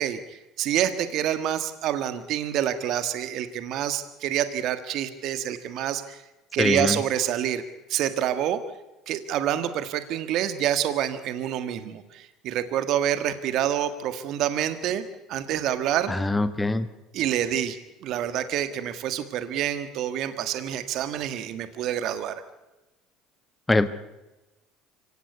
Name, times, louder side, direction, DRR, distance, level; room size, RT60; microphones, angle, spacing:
voice 1, 0.0-6.2 6.5-7.6 7.9-8.6 9.1-15.0 15.3-16.1 17.1-22.4, right 10 dB, 60° right, 11 dB, 1.7 m, -27 dB
voice 2, 6.6-7.0 16.1-16.9 23.7-23.9, left 2 dB, 15° left, 12 dB, 1.4 m, -23 dB
25.0 x 17.5 x 8.3 m, 1.0 s
hypercardioid pair, 80°, 0 cm